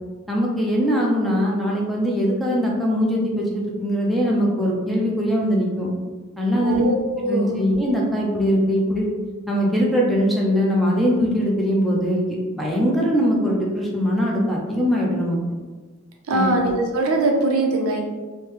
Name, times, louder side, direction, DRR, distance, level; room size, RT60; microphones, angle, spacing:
voice 1, 0.3-5.9 6.4-6.9 7.3-9.1 9.5-15.4 16.3-16.6, equal, ahead, -3 dB, 0.4 m, -21 dB
voice 2, 6.6-7.6 16.3-18.0, right 2 dB, 75° right, 1 dB, 0.5 m, -21 dB
3.2 x 2.1 x 3.1 m, 1.3 s
head